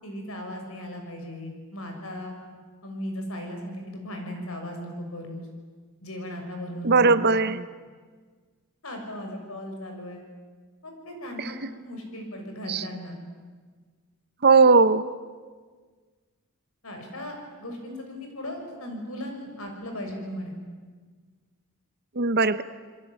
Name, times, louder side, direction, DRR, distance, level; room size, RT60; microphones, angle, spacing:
voice 1, 0.0-2.4 2.8-5.5 6.0-7.0 8.8-10.2 10.8-11.5 11.8-13.1 16.8-20.6, left 1 dB, 70° left, 3 dB, 6.5 m, -37 dB
voice 2, 6.8-7.6 11.4-11.5 12.7-12.8 14.4-15.1 22.2-22.6, right 4 dB, 45° right, 13 dB, 0.9 m, -19 dB
28.5 x 21.5 x 9.1 m, 1.5 s
head